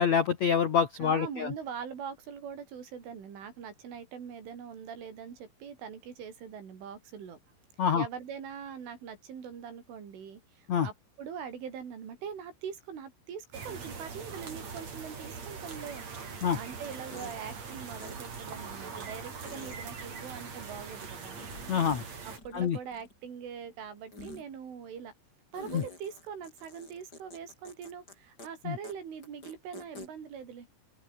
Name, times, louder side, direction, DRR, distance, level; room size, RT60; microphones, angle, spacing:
voice 1, 0.0-1.5 7.8-8.0 10.7-10.9 16.4-16.6 21.7-22.0 22.5-22.8 25.7-25.8 28.7-28.8, left 7 dB, 65° left, 1.7 m, -26 dB
voice 2, 1.0-7.4 7.9-16.3 16.5-21.4 22.2-25.1 25.5-30.7, right 7 dB, 70° right, 6.9 m, -42 dB
sound 1, 13.5-22.4, right 5 dB, 35° right, 4.6 m, -42 dB
sound 2, 17.1-17.4 18.0-18.1 19.5-19.8 21.4-22.1 22.3-23.2 24.1-24.4 25.5-28.1 28.4-28.5 28.8-28.9 29.2-30.1, left 2 dB, 20° left, 7.8 m, -47 dB
open air
omnidirectional pair, 6.0 m